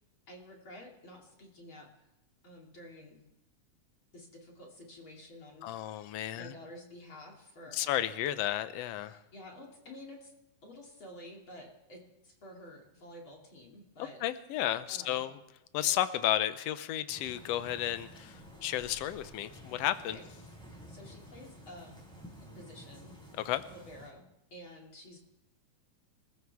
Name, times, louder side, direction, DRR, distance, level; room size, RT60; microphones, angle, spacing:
voice 1, 0.3-1.9 2.4-3.2 4.1-8.1 9.0-10.3 10.6-14.2 14.9-15.2 20.1-20.3 20.7-22.0 22.5-23.2 23.7-24.3 24.5-25.2, left 1 dB, 40° left, -1 dB, 3.3 m, -51 dB
voice 2, 5.6-6.5 7.7-9.2 14.2-15.4 15.7-20.2 23.4-23.6, left 12 dB, 80° left, 12 dB, 1.5 m, -32 dB
sound 1, 17.1-24.1, equal, ahead, 4.7 m, -51 dB
28.0 x 14.0 x 3.6 m, 0.92 s
omnidirectional pair, 3.7 m